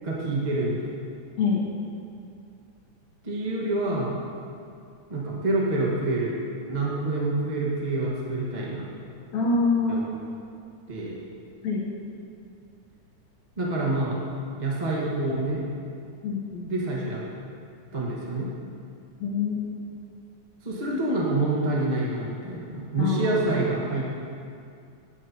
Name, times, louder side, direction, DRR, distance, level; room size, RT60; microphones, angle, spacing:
voice 1, 0.0-0.9 3.2-4.1 5.1-6.4 6.6-8.9 9.9-10.2 10.9-11.2 13.6-14.2 14.6-15.6 16.7-17.2 17.9-18.5 20.6-24.1, right 2 dB, 30° right, -4 dB, 0.8 m, -27 dB
voice 2, 9.3-10.0 11.6-11.9 16.2-16.9 19.2-19.8 23.0-23.8, left 4 dB, 70° left, -3 dB, 2.3 m, -26 dB
17.0 x 9.4 x 2.9 m, 2.5 s
omnidirectional pair, 3.4 m